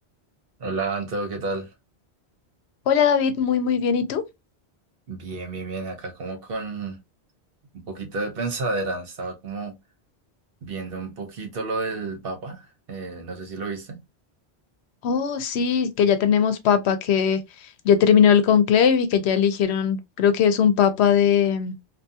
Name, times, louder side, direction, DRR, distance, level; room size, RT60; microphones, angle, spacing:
voice 1, 0.6-1.7 5.1-7.0 7.7-9.8 10.6-14.0, right 3 dB, 60° right, 1.0 m, -31 dB
voice 2, 2.9-4.2 15.0-17.4 17.8-21.8, left 7 dB, 85° left, 0.9 m, -19 dB
2.7 x 2.3 x 2.6 m
omnidirectional pair, 1.1 m